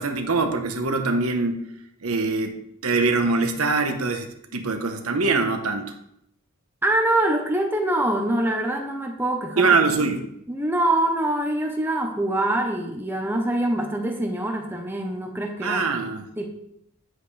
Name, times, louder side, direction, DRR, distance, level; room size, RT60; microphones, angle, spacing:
voice 1, 0.0-1.6 2.0-5.9 9.6-10.2 15.6-16.2, right 3 dB, 85° right, 5 dB, 1.2 m, -23 dB
voice 2, 6.8-9.8 10.5-15.9 16.4-16.5, right 1 dB, 10° right, 2 dB, 0.9 m, -24 dB
10.0 x 7.9 x 3.4 m, 0.74 s
head